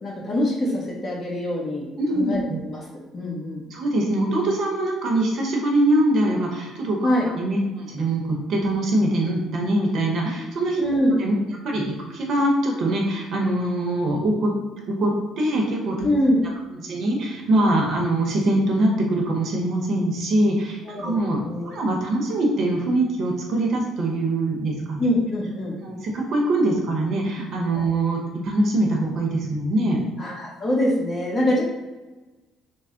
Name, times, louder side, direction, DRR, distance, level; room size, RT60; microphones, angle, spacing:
voice 1, 0.0-1.9 2.1-2.8 3.1-3.6 7.0-7.3 10.8-11.2 16.0-16.4 20.8-21.1 21.4-21.8 25.0-25.8 27.8-27.9 30.2-31.6, left 1 dB, 30° left, -3 dB, 0.9 m, -24 dB
voice 2, 2.0-2.6 3.7-7.1 7.3-10.8 11.2-11.3 11.6-14.5 14.9-16.1 16.7-25.0 25.8-30.0, right 1 dB, 50° right, 0 dB, 0.7 m, -23 dB
3.3 x 2.1 x 3.8 m, 1.2 s
cardioid pair, 145°, 0 cm